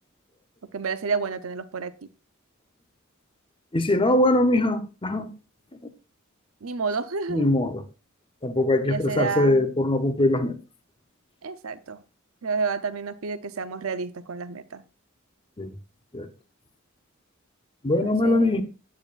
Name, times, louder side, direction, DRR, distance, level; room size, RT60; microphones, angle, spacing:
voice 1, 0.7-2.1 6.6-7.6 8.9-9.6 11.4-12.0 12.4-14.8 18.0-18.6, right 4 dB, 85° right, 0.7 m, -30 dB
voice 2, 3.7-5.3 7.3-7.8 8.4-10.6 15.6-15.7 16.1-16.3 17.8-18.6, left 1 dB, 25° left, 0.8 m, -22 dB
8.9 x 8.6 x 2.5 m
head